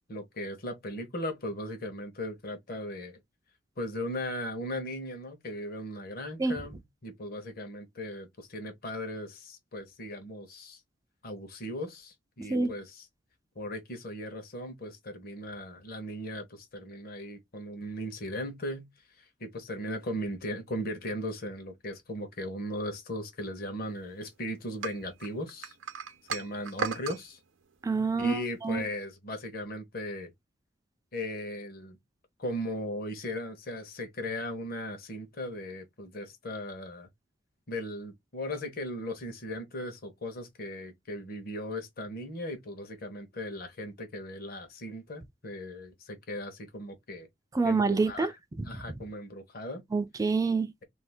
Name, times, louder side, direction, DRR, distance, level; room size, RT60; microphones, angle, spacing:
voice 1, 0.1-3.2 3.8-10.8 11.2-13.1 13.6-18.9 19.4-25.7 26.3-27.4 28.2-30.3 31.1-32.0 32.4-37.1 37.7-47.3 47.6-48.3 48.6-49.8, left 1 dB, 50° left, 0.9 m, -37 dB
sound 1, 24.8-27.2, right 5 dB, 85° right, 0.7 m, -36 dB
voice 2, 27.8-28.8 47.5-48.3 49.9-50.7, right 4 dB, 20° right, 0.3 m, -27 dB
2.7 x 2.4 x 3.4 m
head